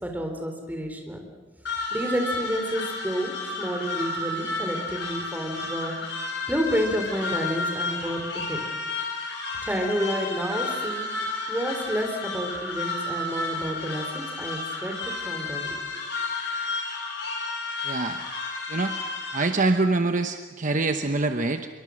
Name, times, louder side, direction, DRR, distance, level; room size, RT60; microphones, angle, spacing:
voice 1, 0.0-1.2 1.9-5.9 6.5-8.2 8.5-8.6 9.6-11.1 11.5-15.8, equal, 10° right, 3 dB, 3.9 m, -30 dB
sound 1, 1.6-19.4, left 3 dB, 70° left, 6.9 m, -32 dB
voice 2, 17.8-18.2 18.7-19.0 19.3-21.7, right 3 dB, 45° right, 6 dB, 1.0 m, -25 dB
25.5 x 23.5 x 6.4 m, 1.4 s
head